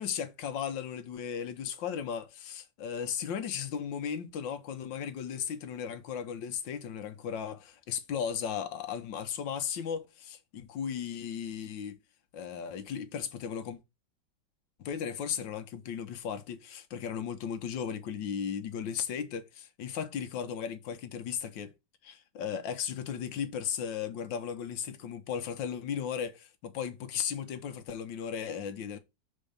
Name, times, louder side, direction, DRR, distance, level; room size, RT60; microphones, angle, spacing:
voice 1, 0.0-12.0 12.3-13.8 14.8-21.7 22.0-29.0, left 8 dB, 75° left, 1.5 m, -36 dB
5.5 x 4.5 x 5.2 m
omnidirectional pair, 2.1 m